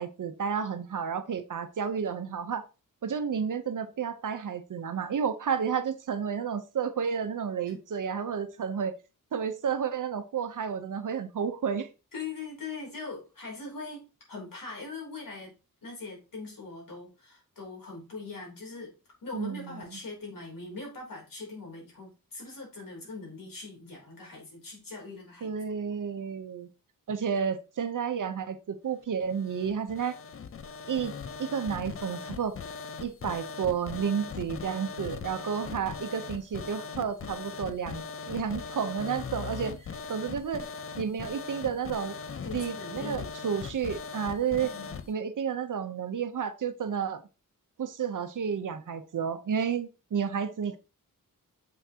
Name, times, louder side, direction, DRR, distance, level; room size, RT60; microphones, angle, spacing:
voice 1, 0.0-2.6 3.0-8.9 9.3-11.9 19.3-20.0 25.4-26.7 27.1-30.2 30.9-32.5 33.0-39.8 40.1-40.7 41.0-42.1 42.5-44.7 45.1-47.2 47.8-50.8, right 7 dB, 65° right, 0.8 m, -31 dB
voice 2, 12.1-15.5 15.8-18.9 19.2-25.5 42.4-43.3 44.7-45.0, left 3 dB, 70° left, 3.4 m, -41 dB
sound 1, 29.2-45.1, left 5 dB, 40° left, 0.5 m, -40 dB
7.0 x 5.8 x 2.9 m
wide cardioid pair, 110°, 34 cm